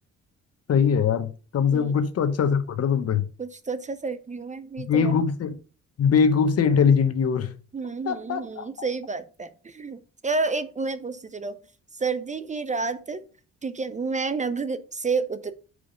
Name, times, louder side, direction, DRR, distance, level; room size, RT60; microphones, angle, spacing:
voice 1, 0.7-3.3 4.9-5.6 6.0-7.5 8.1-8.9, left 6 dB, 55° left, 1.0 m, -22 dB
voice 2, 3.4-5.1 7.7-11.6 11.9-13.2 13.6-15.5, right 4 dB, 25° right, 0.6 m, -30 dB
5.0 x 5.0 x 5.0 m
cardioid pair, 90°, 30 cm